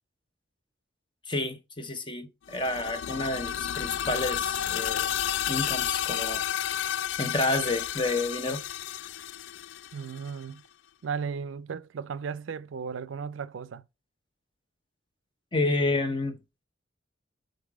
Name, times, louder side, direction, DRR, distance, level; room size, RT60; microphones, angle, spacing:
voice 1, 1.3-5.1 5.5-6.4 7.2-8.6 15.5-16.4, left 2 dB, 25° left, 0.8 m, -30 dB
sound 1, 2.5-10.3, left 10 dB, 75° left, 0.3 m, -31 dB
voice 2, 9.9-10.6 11.0-13.8, right 6 dB, 90° right, 0.4 m, -35 dB
5.2 x 4.0 x 4.8 m
head